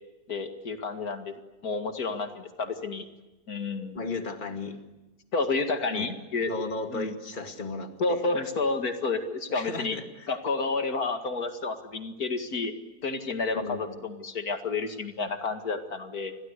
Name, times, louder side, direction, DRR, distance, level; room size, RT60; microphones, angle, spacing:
voice 1, 0.3-3.1 3.5-4.0 5.3-6.5 6.9-7.1 8.0-10.0 10.3-12.7 13.0-16.3, left 3 dB, 85° left, 6 dB, 2.6 m, -30 dB
voice 2, 3.9-4.8 5.9-6.1 6.4-8.2 9.5-10.3 13.5-14.0, left 3 dB, 35° left, 5 dB, 2.3 m, -35 dB
29.5 x 23.0 x 8.3 m, 1.1 s
omnidirectional pair, 1.6 m